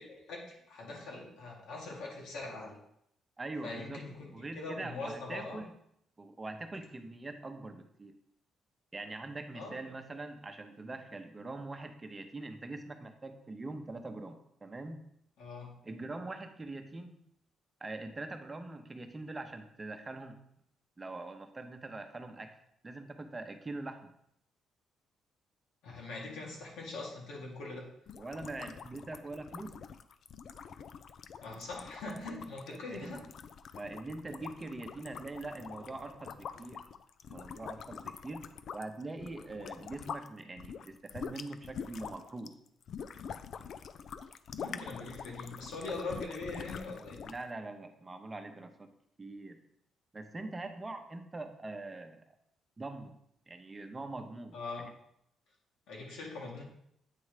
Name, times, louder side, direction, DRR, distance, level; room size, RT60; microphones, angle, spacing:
voice 1, 0.0-2.8 3.6-5.6 9.5-9.8 15.4-15.8 25.8-27.9 31.4-33.2 44.6-47.2 54.5-54.9 55.9-56.6, left 3 dB, 85° left, -2 dB, 1.9 m, -42 dB
voice 2, 3.4-4.0 4.3-5.7 6.2-8.1 8.9-15.1 15.8-17.2 17.8-20.4 21.0-22.6 22.8-24.1 28.2-29.9 32.7-33.1 33.8-36.9 37.3-42.6 47.2-48.9 49.2-49.6 50.1-52.3 52.8-53.2 53.5-54.9, right 2 dB, 25° right, 6 dB, 0.8 m, -43 dB
sound 1, 28.1-40.3 40.6-47.5, left 7 dB, 60° left, 0.4 m, -45 dB
8.4 x 3.1 x 5.0 m, 0.75 s
cardioid pair, 90°, 0 cm